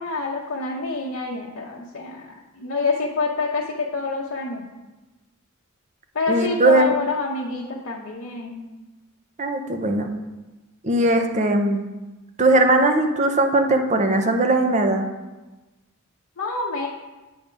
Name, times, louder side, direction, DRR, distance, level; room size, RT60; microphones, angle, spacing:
voice 1, 0.0-4.7 6.1-8.7 16.4-16.9, left 3 dB, 65° left, -3 dB, 0.8 m, -27 dB
voice 2, 6.3-6.9 9.4-10.1 10.8-11.9 12.4-15.0, right 2 dB, 35° right, 5 dB, 0.6 m, -19 dB
8.6 x 3.4 x 5.1 m, 1.1 s
head